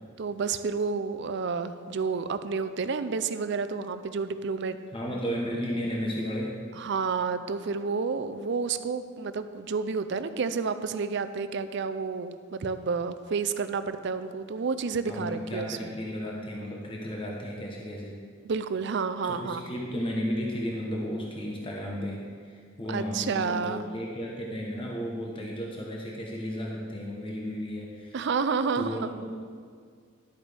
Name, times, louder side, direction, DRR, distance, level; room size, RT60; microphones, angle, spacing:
voice 1, 0.2-4.8 6.7-15.9 18.4-19.6 22.9-23.8 28.1-29.1, right 5 dB, 60° right, 11 dB, 0.5 m, -30 dB
voice 2, 4.9-6.6 15.0-18.2 19.2-28.2 28.7-29.3, equal, 25° left, -2 dB, 1.0 m, -34 dB
11.5 x 8.3 x 3.4 m, 2.1 s
head